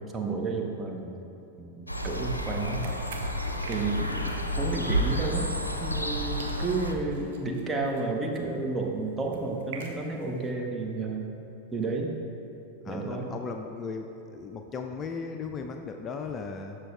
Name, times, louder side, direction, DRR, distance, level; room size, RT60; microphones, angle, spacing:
voice 1, 0.1-1.1 1.6-3.0 3.7-5.5 5.8-11.3 11.7-12.1 12.9-13.3, right 3 dB, 15° right, 1 dB, 0.8 m, -31 dB
sound 1, 1.9-6.9, equal, 85° left, 0.5 m, -30 dB
sound 2, 2.0-6.1 6.4-10.5, right 5 dB, 55° right, 0.7 m, -49 dB
voice 2, 12.8-16.8, left 5 dB, 25° left, 5 dB, 0.3 m, -37 dB
12.0 x 6.1 x 2.3 m, 3.0 s
figure-of-eight pair, 90°, 0 cm